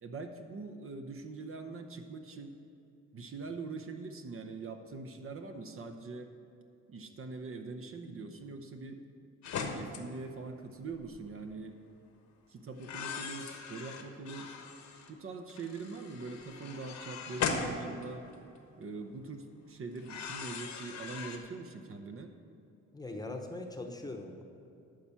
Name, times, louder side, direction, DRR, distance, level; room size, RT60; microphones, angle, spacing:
voice 1, 0.0-2.6 3.1-6.3 6.9-9.0 9.7-11.7 12.5-14.5 15.1-18.3 18.8-22.3, right 3 dB, 45° right, 6 dB, 0.8 m, -43 dB
sound 1, 9.4-10.0 10.9-11.2 12.8-15.1 15.5-18.6 20.0-21.4, left 5 dB, 65° left, 1.1 m, -39 dB
voice 2, 22.9-24.4, left 2 dB, 15° left, 4 dB, 0.9 m, -41 dB
11.5 x 4.5 x 7.2 m, 2.7 s
cardioid pair, 90°, 30 cm